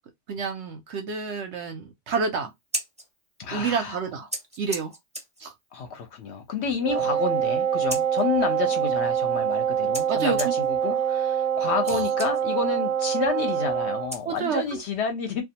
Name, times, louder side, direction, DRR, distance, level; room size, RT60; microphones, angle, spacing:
voice 1, 0.3-2.5 3.5-4.3 4.6-4.9 5.4-5.5 10.1-10.4 11.9-12.0 14.3-14.8, right 6 dB, 65° right, 0.8 m, -29 dB
Scissors, 2.5-14.9, right 1 dB, 10° right, 0.5 m, -41 dB
voice 2, 3.4-4.0 5.7-15.4, left 5 dB, 60° left, 0.8 m, -30 dB
Wind instrument woodwind instrument, 6.8-14.1, right 8 dB, 90° right, 1.0 m, -25 dB
2.3 x 2.2 x 2.7 m
omnidirectional pair, 1.5 m